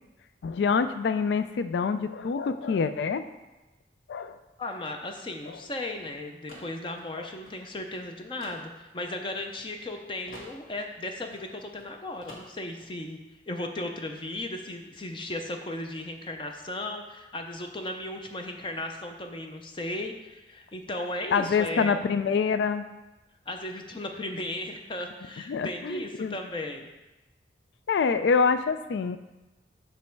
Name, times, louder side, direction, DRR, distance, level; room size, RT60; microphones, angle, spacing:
voice 1, 0.4-3.3 4.1-4.4 5.5-5.6 7.1-7.3 21.3-22.9 25.5-26.3 27.9-29.2, left 5 dB, 75° left, 11 dB, 0.3 m, -26 dB
voice 2, 4.6-13.2 13.5-21.9 23.5-26.9, left 1 dB, 30° left, 4 dB, 0.6 m, -36 dB
sound 1, 4.7-9.9 10.2-11.9 12.2-12.9, left 1 dB, 50° left, 1.4 m, -50 dB
6.2 x 5.4 x 4.5 m, 1.0 s
head